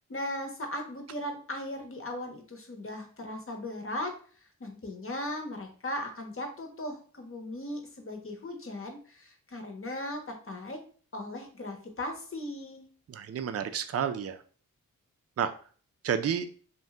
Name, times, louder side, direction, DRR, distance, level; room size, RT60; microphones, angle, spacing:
voice 1, 0.1-10.8 11.1-12.9, left 1 dB, 40° left, 4 dB, 0.9 m, -38 dB
voice 2, 13.1-14.4 15.4-15.5 16.0-16.4, right 8 dB, 45° right, 9 dB, 0.4 m, -30 dB
2.7 x 2.2 x 3.4 m, 0.42 s
cardioid pair, 50°, 35 cm